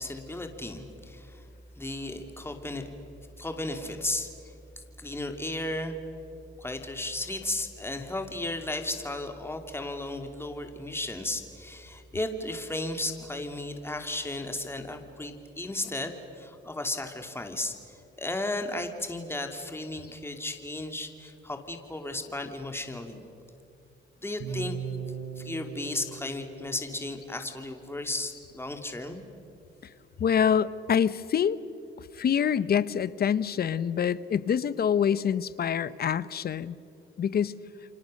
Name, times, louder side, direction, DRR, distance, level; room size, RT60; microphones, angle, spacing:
voice 1, 0.0-1.5 1.8-2.9 3.4-4.5 5.0-6.0 6.6-23.2 24.2-24.8 25.4-29.2, left 2 dB, 10° left, 5 dB, 2.7 m, -34 dB
sound 1, 24.4-28.5, right 6 dB, 75° right, 4.7 m, -40 dB
voice 2, 30.2-31.6 32.0-36.8 37.2-37.6, left 8 dB, 50° left, 17 dB, 0.9 m, -26 dB
29.5 x 25.0 x 6.5 m, 2.8 s
cardioid pair, 90°, 20 cm